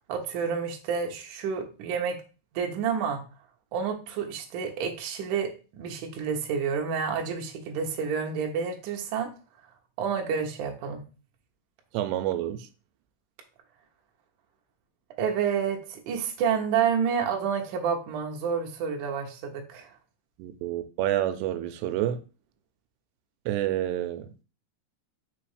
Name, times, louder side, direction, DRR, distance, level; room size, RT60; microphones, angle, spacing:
voice 1, 0.1-2.2 2.5-3.2 3.7-9.3 10.0-11.0 15.2-19.9, right 7 dB, 70° right, 2.0 m, -29 dB
voice 2, 11.9-12.7 20.4-22.2 23.5-24.3, right 12 dB, 85° right, 2.7 m, -28 dB
6.1 x 3.4 x 4.9 m
omnidirectional pair, 4.9 m